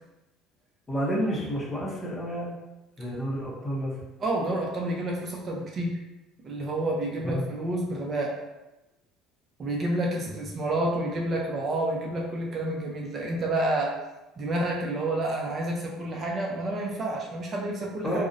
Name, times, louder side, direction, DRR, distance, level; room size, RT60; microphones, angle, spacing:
voice 1, 0.9-2.5 3.0-3.9 7.2-7.4 18.0-18.2, equal, 20° left, -3 dB, 0.6 m, -30 dB
voice 2, 4.2-6.0 6.4-8.3 9.6-13.9 14.4-18.2, right 1 dB, 35° right, -1 dB, 0.4 m, -29 dB
2.4 x 2.0 x 2.5 m, 1.0 s
cardioid pair, 115°, 0 cm